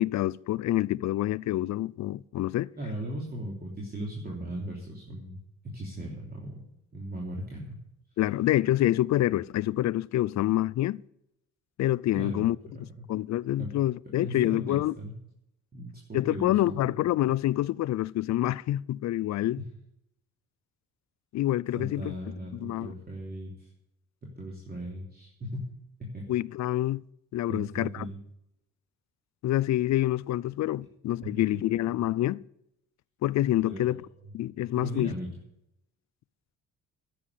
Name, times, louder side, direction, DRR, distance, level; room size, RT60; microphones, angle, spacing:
voice 1, 0.0-2.7 8.2-11.0 11.8-12.6 13.1-14.9 16.1-19.6 21.3-22.1 22.6-22.9 26.3-27.0 27.3-28.1 29.4-32.4 33.2-34.0 34.3-35.1, left 14 dB, 65° left, 0.5 m, -27 dB
voice 2, 2.8-6.6 6.9-7.8 12.1-13.1 13.6-13.7 14.2-15.1 15.7-16.9 19.6-19.7 21.8-23.7 24.2-25.7 26.0-26.2 27.5-28.2 31.2-31.3 33.6-34.0 34.7-35.3, equal, 30° right, 3.2 m, -38 dB
11.5 x 8.7 x 8.2 m
cardioid pair, 90°, 30 cm